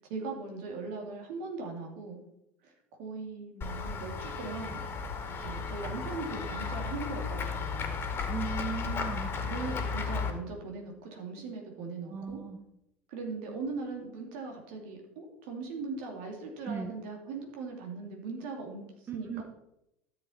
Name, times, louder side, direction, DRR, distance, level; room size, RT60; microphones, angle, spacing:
voice 1, 0.1-2.2 2.6-2.7 3.0-4.8 5.4-8.0 9.4-12.4 13.1-19.4, right 4 dB, 65° right, 2 dB, 2.6 m, -39 dB
Run / Walk footsteps / Bell, 3.6-10.3, left 5 dB, 35° left, 2.2 m, -34 dB
voice 2, 8.2-9.3 12.0-12.6 16.7-16.9 19.1-19.4, right 6 dB, 35° right, 6 dB, 1.2 m, -37 dB
12.5 x 7.3 x 4.3 m, 0.83 s
figure-of-eight pair, 70°, 6 cm